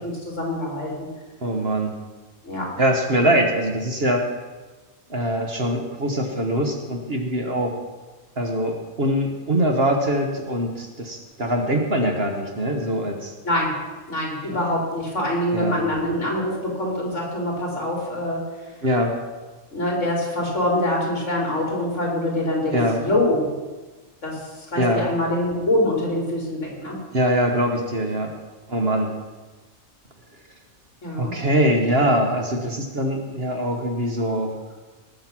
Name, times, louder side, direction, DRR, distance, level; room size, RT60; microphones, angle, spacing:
voice 1, 0.0-1.1 2.4-2.7 13.4-13.7 14.1-18.4 19.7-23.5 24.2-27.0 31.0-31.4, left 1 dB, 55° left, -1 dB, 3.5 m, -24 dB
voice 2, 1.4-2.0 2.8-4.3 5.1-7.8 8.4-13.3 14.5-14.6 15.5-15.8 18.8-19.2 22.7-23.0 24.8-25.0 27.1-28.3 28.7-29.1 31.2-34.6, right 1 dB, 45° right, 3 dB, 1.5 m, -23 dB
18.5 x 6.6 x 6.0 m, 1.3 s
omnidirectional pair, 1.5 m